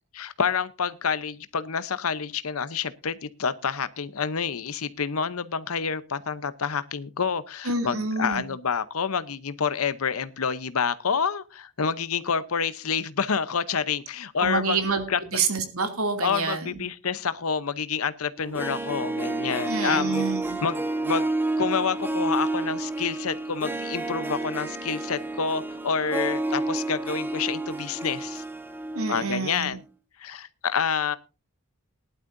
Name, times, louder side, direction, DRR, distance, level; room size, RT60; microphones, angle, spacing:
voice 1, 0.1-14.8 15.1-15.2 16.2-20.2 20.6-21.3 21.6-28.4 29.1-29.8 30.2-31.2, left 6 dB, 85° left, 0.8 m, -28 dB
voice 2, 7.6-8.5 14.4-15.0 15.3-16.8 19.7-20.6 28.9-29.8, right 4 dB, 85° right, 2.7 m, -28 dB
Harp, 18.4-29.4 29.7-29.8, right 2 dB, 10° right, 1.1 m, -30 dB
19.5 x 11.5 x 2.6 m
head